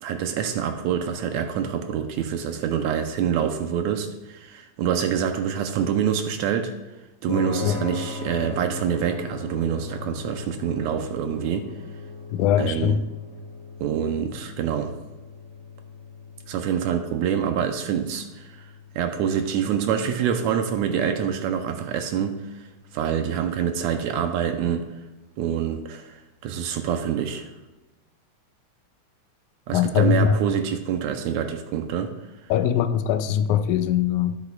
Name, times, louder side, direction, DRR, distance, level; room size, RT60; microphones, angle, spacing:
voice 1, 0.0-6.7 7.2-11.7 12.6-13.0 13.8-14.9 16.5-18.7 19.0-22.7 22.9-24.8 25.4-27.5 29.7-32.1, right 8 dB, 80° right, 1.8 m, -26 dB
sound 1, 7.3-23.8, left 3 dB, 10° left, 1.5 m, -39 dB
voice 2, 12.3-13.0 29.7-30.4 32.5-34.4, left 9 dB, 85° left, 2.0 m, -21 dB
12.5 x 7.9 x 2.3 m
omnidirectional pair, 3.4 m